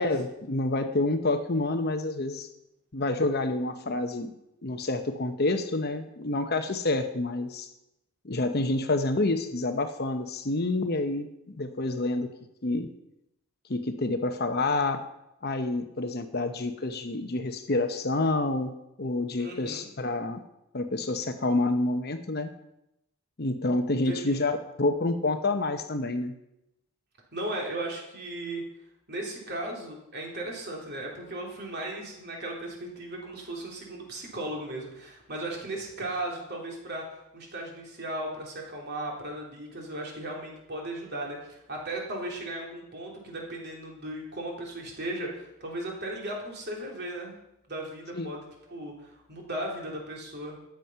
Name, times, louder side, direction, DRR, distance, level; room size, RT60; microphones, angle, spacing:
voice 1, 0.0-2.5 2.9-4.3 4.6-7.7 8.2-12.3 12.6-12.9 13.7-15.0 15.4-20.4 20.7-22.5 23.4-26.3 48.1-48.3, left 2 dB, 45° left, 7 dB, 0.9 m, -28 dB
voice 2, 19.4-19.9 24.0-24.4 27.3-28.6 29.1-37.1 37.3-47.4 47.7-50.6, right 1 dB, 45° right, -1 dB, 3.3 m, -36 dB
13.5 x 9.1 x 5.6 m, 0.86 s
head